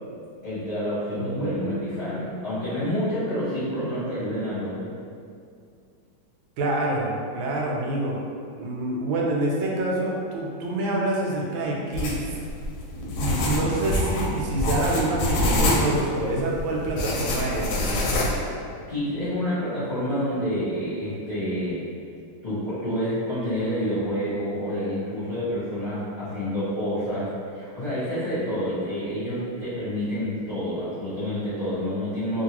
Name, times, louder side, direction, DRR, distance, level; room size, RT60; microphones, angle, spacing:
voice 1, 0.4-4.9 18.9-21.8 22.4-32.4, equal, 45° left, -14 dB, 1.0 m, -28 dB
voice 2, 1.2-2.7 6.6-8.2 8.6-12.2 12.9-18.1, right 1 dB, 80° right, -2 dB, 1.3 m, -27 dB
sound 1, 11.9-18.4, left 1 dB, 75° left, 1.2 m, -25 dB
2.8 x 2.7 x 2.9 m, 2.4 s
omnidirectional pair, 2.1 m